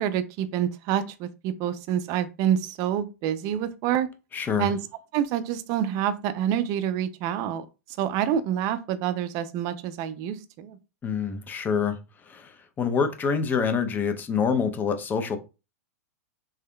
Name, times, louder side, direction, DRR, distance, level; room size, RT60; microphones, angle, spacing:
voice 1, 0.0-4.1 4.6-4.8 5.1-7.7 8.0-10.8, right 9 dB, 45° right, 0.5 m, -27 dB
voice 2, 4.3-4.7 11.0-12.0 12.2-15.4, left 6 dB, 20° left, 0.6 m, -26 dB
3.5 x 3.4 x 2.2 m
hypercardioid pair, 110°, 8 cm